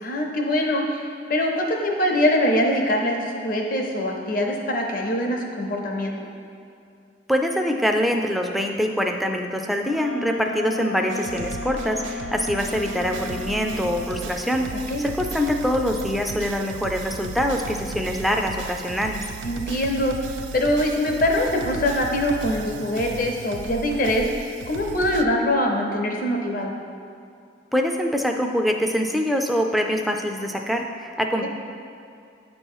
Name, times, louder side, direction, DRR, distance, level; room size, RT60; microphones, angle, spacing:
voice 1, 0.0-1.0 1.3-6.3 14.7-15.0 19.4-20.2 20.5-26.8 31.4-31.5, left 1 dB, 50° left, 1 dB, 0.8 m, -23 dB
voice 2, 7.3-14.7 15.0-19.2 27.7-31.5, equal, ahead, 2 dB, 0.3 m, -24 dB
Wind instrument woodwind instrument, 9.8-14.2, left 2 dB, 85° left, 0.7 m, -34 dB
sound 1, 11.1-25.2, right 5 dB, 80° right, 0.3 m, -36 dB
8.7 x 3.0 x 5.4 m, 2.5 s
head